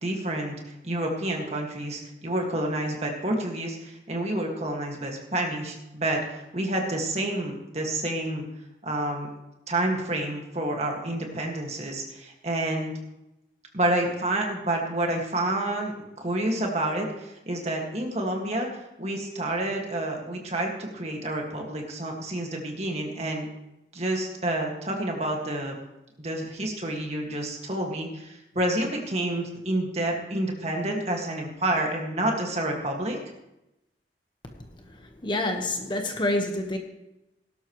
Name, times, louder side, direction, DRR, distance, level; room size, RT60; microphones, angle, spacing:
voice 1, 0.0-8.4 8.8-9.3 9.7-12.9 13.7-18.7 19.0-23.5 23.9-25.8 26.2-33.2, right 1 dB, 40° right, 1 dB, 2.0 m, -29 dB
voice 2, 34.8-36.8, left 1 dB, 25° left, 3 dB, 1.3 m, -28 dB
17.5 x 12.0 x 3.2 m, 0.92 s
head